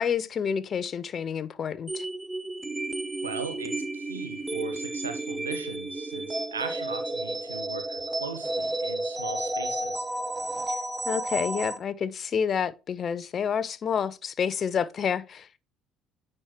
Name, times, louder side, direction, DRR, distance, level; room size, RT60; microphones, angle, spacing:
voice 1, 0.0-2.1 10.7-10.8 11.1-15.6, left 7 dB, 45° left, 0.5 m, -29 dB
sound 1, 1.9-11.8, right 1 dB, 15° right, 0.7 m, -32 dB
voice 2, 3.2-10.0, right 5 dB, 90° right, 0.9 m, -39 dB
9.7 x 4.4 x 3.0 m
hypercardioid pair, 60°, 0 cm